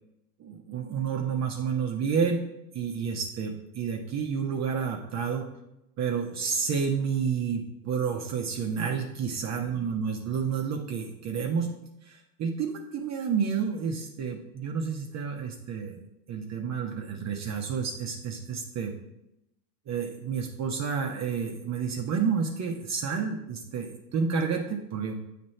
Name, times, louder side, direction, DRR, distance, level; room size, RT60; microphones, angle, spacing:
voice 1, 0.4-2.4 2.7-5.5 6.0-11.7 12.1-18.9 19.9-25.2, right 6 dB, 35° right, 1 dB, 0.9 m, -30 dB
7.6 x 3.4 x 4.2 m, 0.87 s
hypercardioid pair, 85°, 47 cm